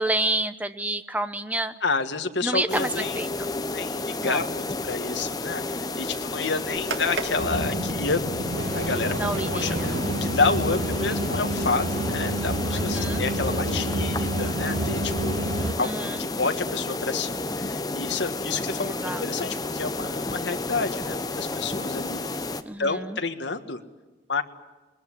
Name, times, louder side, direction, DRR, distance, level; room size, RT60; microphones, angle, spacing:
voice 1, 0.0-1.7 2.4-3.5 4.2-4.4 9.1-9.9 12.7-13.2 15.6-16.3 18.8-19.5 22.7-23.2, right 1 dB, 10° right, 11 dB, 0.9 m, -29 dB
voice 2, 1.8-3.2 3.7-8.2 8.7-15.3 15.8-22.4 22.8-23.8 24.3-24.4, left 4 dB, 70° left, 7 dB, 1.7 m, -29 dB
sound 1, 2.7-22.6, left 2 dB, 20° left, 1.0 m, -31 dB
sound 2, 6.8-15.7, right 1 dB, 80° right, 2.0 m, -29 dB
21.5 x 20.0 x 9.8 m, 1.2 s
head